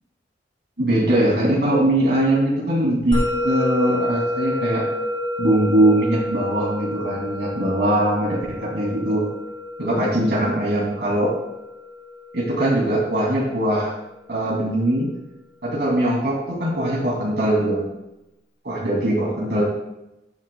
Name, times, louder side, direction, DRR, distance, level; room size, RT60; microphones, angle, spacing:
voice 1, 0.8-4.8 5.4-9.3 9.8-11.3 12.3-13.9 14.3-15.1 15.6-17.9 18.6-19.6, right 1 dB, 65° right, -4 dB, 2.8 m, -21 dB
Musical instrument, 3.1-13.7, left 1 dB, 30° left, 3.2 m, -29 dB
14.5 x 8.7 x 2.3 m, 0.92 s
head